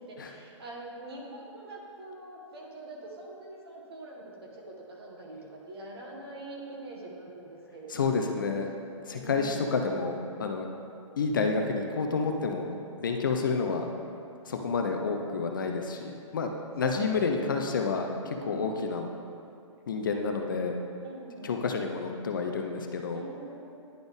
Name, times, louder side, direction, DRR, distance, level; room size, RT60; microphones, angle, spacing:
voice 1, 0.1-8.3 9.1-9.6 16.8-17.0 18.4-18.6 21.0-21.5 23.1-23.8, right 2 dB, 50° right, -2 dB, 1.3 m, -44 dB
voice 2, 7.9-8.7 9.1-10.7 11.2-13.9 14.5-16.5 16.8-19.1 19.9-20.8 21.4-23.2, left 4 dB, 40° left, 3 dB, 0.4 m, -29 dB
10.0 x 4.1 x 3.5 m, 2.6 s
hypercardioid pair, 175°, 17 cm